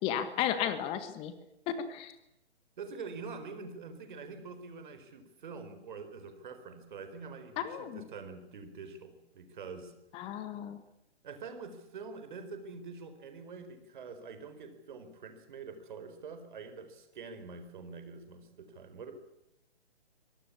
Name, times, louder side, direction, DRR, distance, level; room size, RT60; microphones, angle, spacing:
voice 1, 0.0-1.3 1.7-2.1 7.6-8.0 10.1-10.8, left 9 dB, 15° left, 11 dB, 1.6 m, -34 dB
voice 2, 2.8-9.9 10.5-10.6 11.2-19.1, right 4 dB, 45° right, 8 dB, 4.6 m, -45 dB
25.5 x 18.0 x 8.6 m, 0.87 s
figure-of-eight pair, 130°, 33 cm